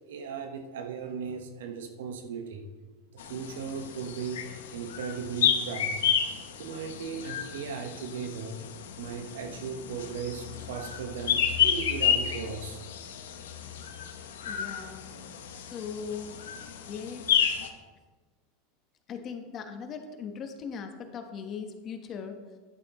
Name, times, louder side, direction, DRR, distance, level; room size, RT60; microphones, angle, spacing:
voice 1, 0.1-2.7 3.1-6.0 6.6-8.6 9.0-12.8, right 6 dB, 85° right, 6 dB, 1.1 m, -37 dB
sound 1, 3.2-17.7, left 8 dB, 90° left, 0.9 m, -31 dB
voice 2, 14.4-15.1 15.7-16.4 16.9-17.3 19.1-22.4, left 6 dB, 35° left, 6 dB, 1.1 m, -39 dB
11.0 x 9.2 x 3.0 m, 1.3 s
supercardioid pair, 120°, 0 cm